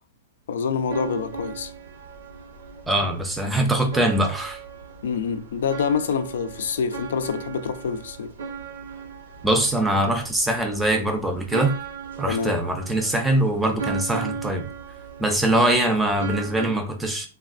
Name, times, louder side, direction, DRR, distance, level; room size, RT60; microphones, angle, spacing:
voice 1, 0.5-1.7 5.0-8.3 12.3-12.6, left 6 dB, 75° left, 0.4 m, -26 dB
sound 1, 0.8-16.7, right 5 dB, 85° right, 0.6 m, -37 dB
voice 2, 2.9-4.6 9.4-11.8 12.2-14.7 15.2-17.3, right 1 dB, 5° right, 0.5 m, -22 dB
3.3 x 2.2 x 2.4 m
hypercardioid pair, 155°, 0 cm